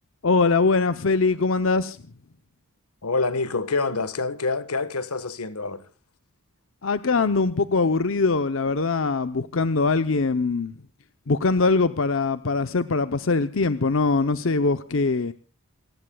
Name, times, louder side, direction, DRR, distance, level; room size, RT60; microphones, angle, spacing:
voice 1, 0.2-2.0 6.8-10.7 11.3-15.3, left 3 dB, 60° left, 0.7 m, -22 dB
voice 2, 3.0-5.8, left 3 dB, 90° left, 1.4 m, -26 dB
28.5 x 19.0 x 2.3 m
head